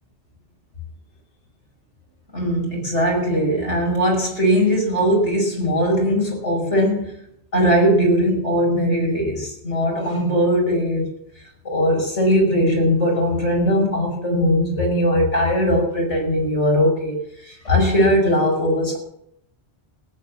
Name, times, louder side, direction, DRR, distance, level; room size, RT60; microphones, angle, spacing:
voice 1, 2.3-7.1 7.5-11.1 11.6-17.2 17.4-19.0, equal, 85° left, -1 dB, 5.8 m, -19 dB
17.5 x 8.7 x 7.2 m, 0.73 s
omnidirectional pair, 1.2 m